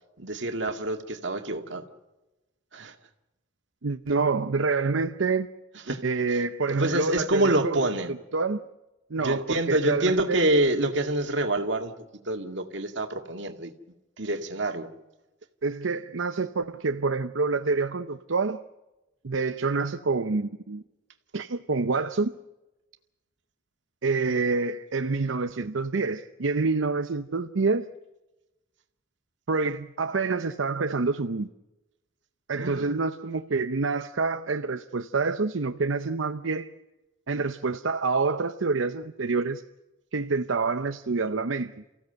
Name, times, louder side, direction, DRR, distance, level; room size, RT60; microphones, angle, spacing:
voice 1, 0.2-1.9 2.7-3.0 5.9-6.0 6.3-6.4 6.7-8.1 9.2-11.9 12.2-13.7 14.2-14.9 32.6-33.0, right 1 dB, 65° right, 5 dB, 2.1 m, -27 dB
voice 2, 3.8-5.5 6.0-7.8 8.3-8.6 9.1-10.4 15.6-18.6 19.2-20.8 21.3-22.3 24.0-27.9 29.5-31.5 32.5-36.7 37.3-39.6 40.1-41.7, right 4 dB, 85° right, 8 dB, 0.7 m, -27 dB
29.0 x 16.0 x 7.9 m, 1.1 s
head